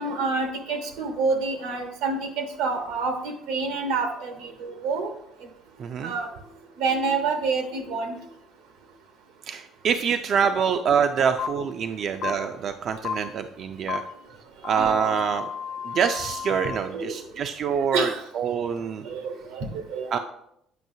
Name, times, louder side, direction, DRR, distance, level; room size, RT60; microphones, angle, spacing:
voice 1, 0.0-5.1 6.0-6.3 6.8-8.1 14.7-15.1 16.7-17.2 17.9-18.2 19.0-20.2, right 4 dB, 90° right, 5 dB, 1.0 m, -28 dB
voice 2, 5.8-6.1 9.5-14.0 14.6-15.5 15.8-19.1 20.1-20.2, right 7 dB, 50° right, 7 dB, 0.3 m, -25 dB
sound 1, 11.4-11.5 12.2-12.3 13.0-13.1 13.9-14.0 14.6-16.8, left 8 dB, 45° left, 0.5 m, -32 dB
7.6 x 5.4 x 2.7 m, 0.75 s
cardioid pair, 115°, 0 cm